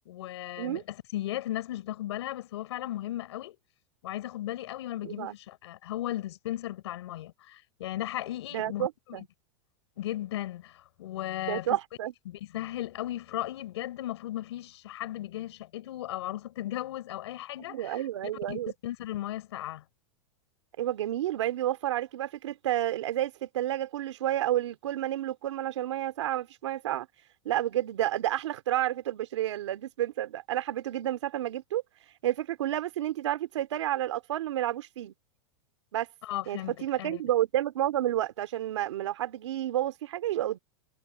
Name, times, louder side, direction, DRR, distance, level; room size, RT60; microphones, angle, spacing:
voice 1, 0.1-3.6 4.0-8.9 10.0-11.8 12.3-18.0 18.5-19.8 36.2-37.2, left 14 dB, 70° left, 5.3 m, -36 dB
voice 2, 5.0-5.3 8.5-9.2 11.4-12.1 17.7-18.7 20.8-27.1 27.4-31.8 32.2-35.1 35.9-36.1 36.5-40.6, right 13 dB, 85° right, 2.7 m, -30 dB
supercardioid pair, 175°, 15 cm